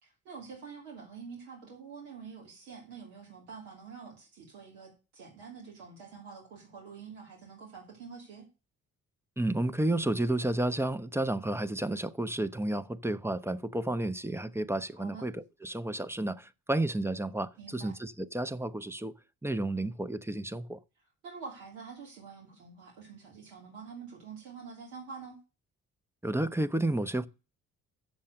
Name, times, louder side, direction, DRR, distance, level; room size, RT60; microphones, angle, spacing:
voice 1, 0.0-8.5 15.0-15.3 17.6-17.9 21.2-25.4, right 5 dB, 75° right, 2.7 m, -47 dB
voice 2, 9.4-19.1 19.4-20.8 26.2-27.3, right 1 dB, 5° right, 0.7 m, -31 dB
7.5 x 7.2 x 6.6 m
figure-of-eight pair, 40°, 43 cm